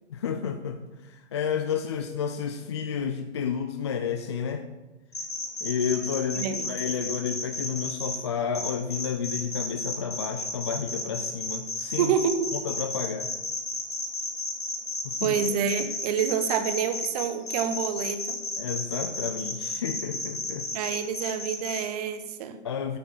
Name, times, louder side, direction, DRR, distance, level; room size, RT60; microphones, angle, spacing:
voice 1, 0.1-4.6 5.6-12.2 12.6-13.3 15.0-15.4 18.6-20.7 22.6-23.0, left 7 dB, 25° left, 7 dB, 0.4 m, -31 dB
sound 1, 5.1-8.2 8.5-21.8, left 2 dB, 80° left, 3.3 m, -32 dB
voice 2, 6.3-6.7 12.0-12.5 15.2-18.4 20.7-22.6, right 7 dB, 30° right, 10 dB, 1.0 m, -28 dB
10.5 x 7.0 x 7.2 m, 1.1 s
figure-of-eight pair, 125°, 36 cm